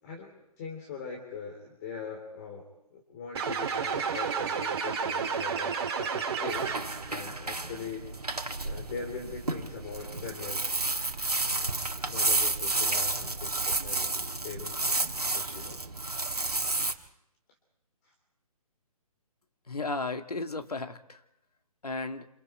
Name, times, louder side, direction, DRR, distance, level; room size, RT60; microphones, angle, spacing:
voice 1, 0.0-6.7 7.1-8.1 8.6-10.8 11.5-11.8 12.0-15.8 18.0-18.1, left 5 dB, 30° left, 1 dB, 3.3 m, -42 dB
sound 1, 3.3-7.1, right 6 dB, 40° right, 2.7 m, -31 dB
sound 2, 6.5-16.9, right 2 dB, 80° right, 1.9 m, -31 dB
voice 2, 19.7-21.2 21.8-22.3, left 3 dB, 75° left, 7 dB, 1.9 m, -34 dB
29.5 x 27.0 x 4.6 m, 0.78 s
figure-of-eight pair, 140°, 19 cm